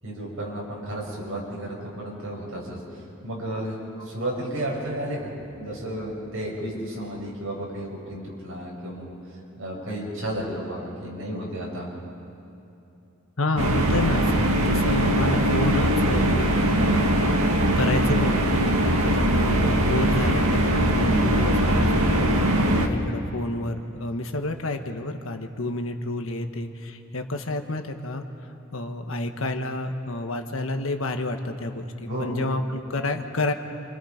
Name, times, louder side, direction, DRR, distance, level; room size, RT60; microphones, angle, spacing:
voice 1, 0.0-5.3 5.6-9.1 9.6-11.9 32.0-32.4, right 1 dB, 65° right, -4 dB, 6.9 m, -32 dB
voice 2, 13.4-17.4 17.8-28.2 28.7-33.5, left 2 dB, 65° left, 5 dB, 1.4 m, -29 dB
sound 1, 13.6-22.9, right 1 dB, 85° right, 1.9 m, -21 dB
28.0 x 27.0 x 5.3 m, 2.8 s
head